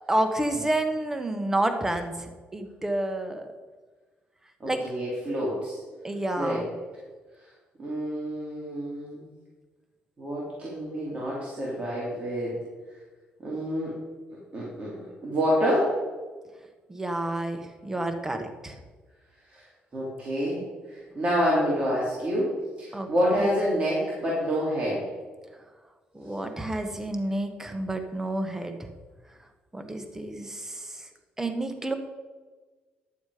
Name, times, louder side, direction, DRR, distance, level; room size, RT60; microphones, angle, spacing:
voice 1, 0.1-3.5 4.6-4.9 6.0-6.6 16.9-18.7 22.9-23.1 26.1-28.8 29.7-30.8 31.4-31.9, right 1 dB, 15° right, 6 dB, 1.2 m, -29 dB
voice 2, 4.6-5.8 6.4-6.7 7.8-9.2 10.2-12.5 13.4-13.9 14.5-15.9 19.5-19.6 19.9-20.6 20.9-22.5 22.8-25.1, equal, 35° right, -6 dB, 3.2 m, -27 dB
11.5 x 7.1 x 5.0 m, 1.3 s
cardioid pair, 90°, 4 cm